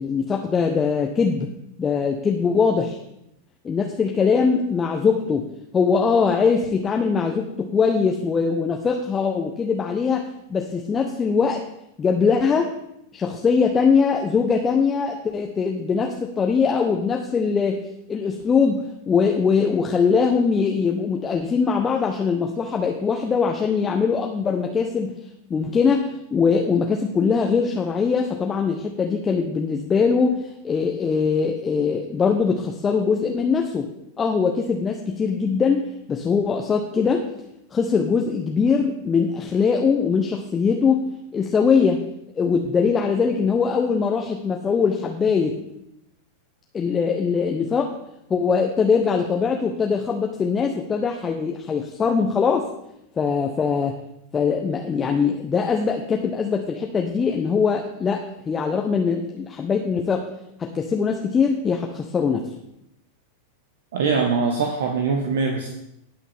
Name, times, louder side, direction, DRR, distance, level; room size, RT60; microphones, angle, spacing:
voice 1, 0.0-1.5 1.8-3.0 3.6-5.5 5.7-11.6 12.0-12.7 13.1-17.8 18.1-25.1 25.5-33.9 34.2-37.3 37.7-41.0 41.3-42.0 42.3-45.5 46.7-47.9 48.3-52.7 53.2-54.0 54.3-60.3 60.6-62.5, left 5 dB, 20° left, 2 dB, 0.9 m, -22 dB
voice 2, 63.9-65.7, right 5 dB, 60° right, 3 dB, 1.3 m, -22 dB
18.5 x 6.2 x 3.6 m, 0.81 s
figure-of-eight pair, 90°, 0 cm